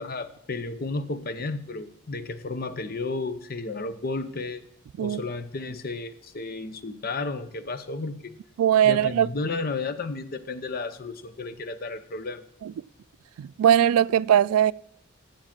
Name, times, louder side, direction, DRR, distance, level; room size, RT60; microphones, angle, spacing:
voice 1, 0.0-4.6 5.0-8.3 8.8-12.4, left 3 dB, 45° left, 0.7 m, -33 dB
voice 2, 8.6-9.3 12.6-12.7 13.4-14.7, right 10 dB, 90° right, 0.3 m, -20 dB
7.3 x 7.2 x 7.4 m
head